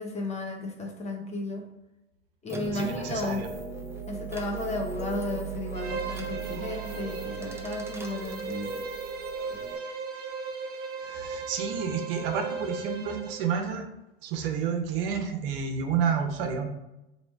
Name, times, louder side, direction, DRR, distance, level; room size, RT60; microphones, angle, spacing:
voice 1, 0.0-1.6 2.4-3.5 4.1-8.8 9.5-9.6, left 2 dB, 20° left, 2 dB, 0.7 m, -34 dB
sound 1, 2.5-9.8, right 4 dB, 10° right, 0.6 m, -38 dB
voice 2, 2.7-3.5 11.0-13.9 14.2-16.7, right 6 dB, 70° right, 5 dB, 0.8 m, -30 dB
Bowed string instrument, 5.7-13.4, right 4 dB, 30° right, 1.0 m, -37 dB
3.1 x 2.8 x 4.4 m, 0.93 s
hypercardioid pair, 90°, 30 cm